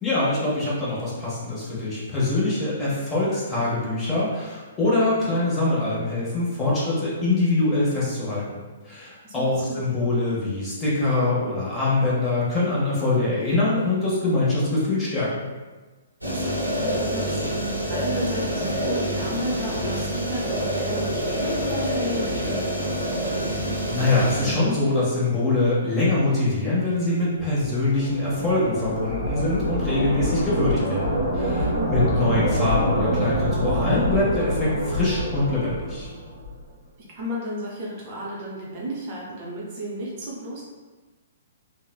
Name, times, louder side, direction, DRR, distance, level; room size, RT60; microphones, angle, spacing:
voice 1, 0.0-15.5 23.9-36.1, left 2 dB, 15° left, -8 dB, 0.8 m, -24 dB
voice 2, 9.2-10.1 16.3-17.4 17.9-23.6 31.8-32.4 37.1-40.6, equal, 35° right, -5 dB, 0.6 m, -33 dB
sound 1, 16.2-24.5, equal, 90° right, 0.6 m, -27 dB
sound 2, 27.4-36.6, right 1 dB, 60° left, 0.8 m, -26 dB
3.0 x 2.0 x 2.3 m, 1.3 s
figure-of-eight pair, 120°, 0 cm